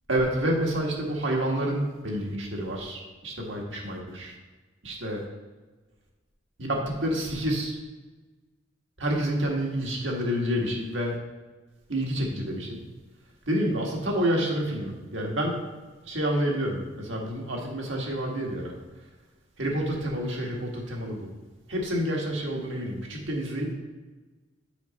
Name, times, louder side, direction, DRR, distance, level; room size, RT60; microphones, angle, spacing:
voice 1, 0.1-4.4 4.8-5.2 6.6-7.8 9.0-11.2 11.9-12.8 13.5-15.6 16.1-18.7 19.6-21.3 21.7-23.7, equal, 75° right, -1 dB, 1.7 m, -28 dB
7.0 x 5.4 x 4.2 m, 1.2 s
head